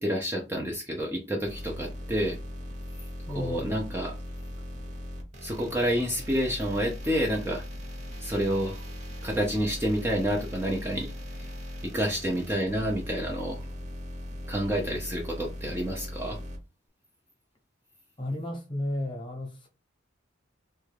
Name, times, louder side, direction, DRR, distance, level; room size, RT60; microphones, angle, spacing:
voice 1, 0.0-2.4 3.3-4.2 5.4-7.7 8.2-8.8 9.2-11.5 11.8-13.7 14.5-16.4, equal, 10° right, 0.5 m, -29 dB
sound 1, 1.5-16.6, equal, 35° right, 0.9 m, -39 dB
voice 2, 3.3-3.7 18.2-19.7, left 1 dB, 25° left, 0.9 m, -33 dB
3.3 x 2.2 x 3.2 m
head